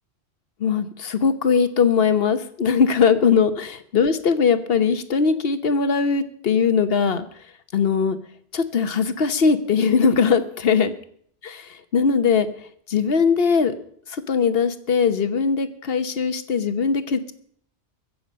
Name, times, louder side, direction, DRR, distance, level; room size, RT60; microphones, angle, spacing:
voice 1, 0.6-7.3 7.7-8.2 8.5-10.9 11.9-12.5 12.9-13.7 14.1-17.3, left 6 dB, 65° left, 11 dB, 1.2 m, -20 dB
23.0 x 7.6 x 5.3 m, 0.63 s
omnidirectional pair, 1.1 m